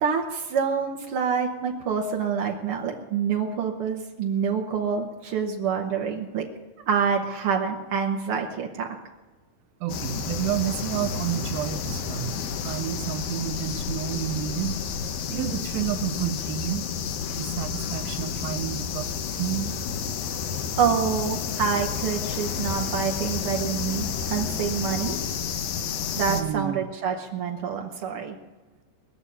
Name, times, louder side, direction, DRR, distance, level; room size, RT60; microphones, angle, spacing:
voice 1, 0.0-6.4 6.9-8.9 20.8-25.2 26.2-28.3, right 6 dB, 70° right, 0 dB, 1.3 m, -27 dB
voice 2, 9.8-14.7 15.3-16.9 17.3-19.7 26.3-26.8, right 13 dB, 85° right, 5 dB, 2.7 m, -30 dB
sound 1, 9.9-26.4, left 7 dB, 75° left, 2.7 m, -30 dB
20.5 x 7.0 x 9.9 m, 1.2 s
omnidirectional pair, 4.1 m